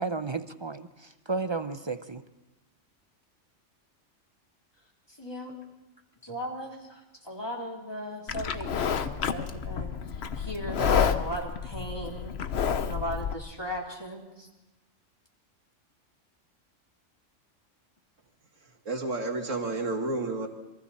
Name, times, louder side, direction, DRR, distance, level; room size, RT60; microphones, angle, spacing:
voice 1, 0.0-2.2, right 4 dB, 30° right, 11 dB, 0.6 m, -33 dB
voice 2, 5.1-5.6 6.2-12.4 12.8-14.5, equal, 20° left, -1 dB, 3.5 m, -37 dB
Livestock farm animals working animals, 8.3-13.3, left 7 dB, 60° left, 1.1 m, -29 dB
voice 3, 18.6-20.5, right 2 dB, 90° right, 3 dB, 2.5 m, -31 dB
28.0 x 23.0 x 4.2 m, 1.1 s
omnidirectional pair, 1.3 m